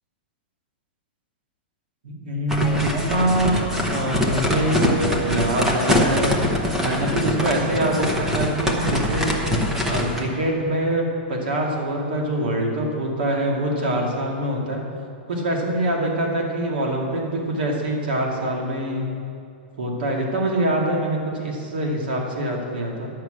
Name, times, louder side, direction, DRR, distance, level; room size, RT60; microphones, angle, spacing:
voice 1, 2.0-6.4 6.8-9.4 9.8-14.8 15.3-19.1 19.8-23.1, right 1 dB, 65° right, 0 dB, 2.2 m, -24 dB
sound 1, 2.5-10.3, left 1 dB, 5° right, 0.7 m, -23 dB
11.0 x 5.9 x 7.8 m, 2.5 s
supercardioid pair, 180°, 6 cm